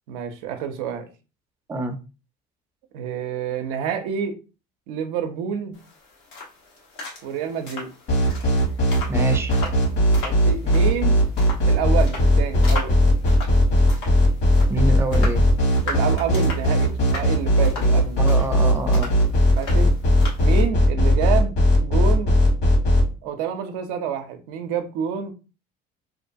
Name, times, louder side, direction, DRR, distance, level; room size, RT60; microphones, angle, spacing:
voice 1, 0.1-1.1 2.9-4.3 4.9-5.8 7.2-7.9 10.2-11.2 11.7-13.0 15.9-18.2 19.6-19.9 20.4-21.6 21.8-22.3 23.2-25.3, right 8 dB, 85° right, 0.5 m, -28 dB
sound 1, 5.7-20.7, left 3 dB, 85° left, 1.1 m, -38 dB
sound 2, 8.1-23.0, equal, 60° left, 1.3 m, -17 dB
voice 2, 9.1-9.5 14.7-15.5 18.2-19.1, right 2 dB, 10° right, 0.4 m, -26 dB
2.6 x 2.2 x 2.5 m
supercardioid pair, 90°, 20 cm